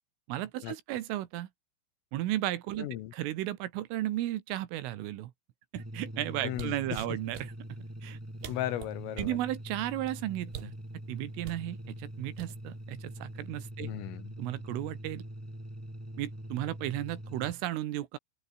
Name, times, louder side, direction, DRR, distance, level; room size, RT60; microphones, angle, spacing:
voice 1, 0.3-1.5 2.1-2.9 3.1-5.3 5.7-7.5 8.0-8.2 9.2-10.7 11.1-13.9 14.4-15.2 16.2-18.2, right 14 dB, 80° right, 4.0 m, -34 dB
voice 2, 2.8-3.1 6.4-7.0 8.5-9.4 13.8-14.3, left 14 dB, 75° left, 4.1 m, -36 dB
sound 1, 5.7-17.5, right 1 dB, 5° right, 1.1 m, -43 dB
sound 2, 6.5-7.5 8.2-8.3 8.4-9.4 10.5-10.8 11.4-11.7 12.4-12.8 13.2-13.5, right 11 dB, 60° right, 3.7 m, -44 dB
open air
omnidirectional pair, 6.0 m